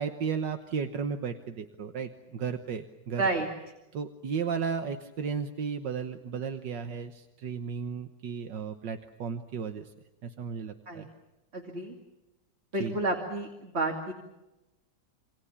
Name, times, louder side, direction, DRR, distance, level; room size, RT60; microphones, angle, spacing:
voice 1, 0.0-3.2 3.9-9.9 10.2-11.1 12.8-13.0, right 6 dB, 80° right, 8 dB, 1.9 m, -34 dB
voice 2, 11.5-11.9 12.7-14.1, right 2 dB, 35° right, 2 dB, 2.8 m, -30 dB
28.0 x 26.0 x 7.1 m, 1.0 s
omnidirectional pair, 1.9 m